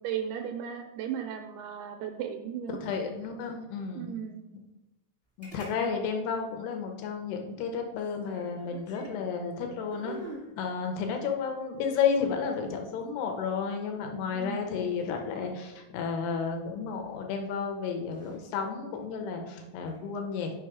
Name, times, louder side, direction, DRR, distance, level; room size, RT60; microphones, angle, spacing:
voice 1, 0.0-2.8 3.9-4.5 14.3-14.6, right 9 dB, 80° right, 5 dB, 2.3 m, -36 dB
voice 2, 2.8-4.2 5.4-10.2 10.6-20.5, left 6 dB, 80° left, 3 dB, 2.8 m, -32 dB
sound 1, 5.4-5.8 6.0-6.1 8.0-9.3 9.9-10.5 11.8-13.0 14.8-15.1 17.0-17.3 17.9-18.4 19.7-20.0, right 2 dB, 15° left, 0.8 m, -46 dB
6.1 x 4.8 x 4.7 m, 1.0 s
omnidirectional pair, 4.7 m